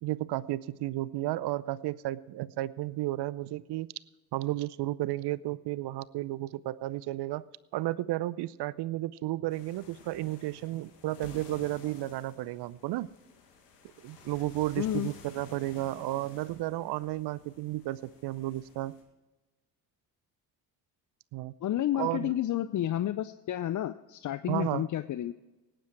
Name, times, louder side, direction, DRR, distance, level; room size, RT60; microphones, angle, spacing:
voice 1, 0.0-3.9 4.3-7.4 7.7-13.1 14.0-19.0 21.3-21.5 22.0-22.3 24.5-24.8, right 16 dB, 60° right, 20 dB, 0.6 m, -33 dB
sound 1, 9.5-19.0, left 5 dB, 85° left, 2.1 m, -53 dB
voice 2, 14.8-15.1 21.6-25.3, left 12 dB, 40° left, 14 dB, 0.6 m, -31 dB
18.0 x 10.0 x 4.6 m, 1.1 s
hypercardioid pair, 50°, 47 cm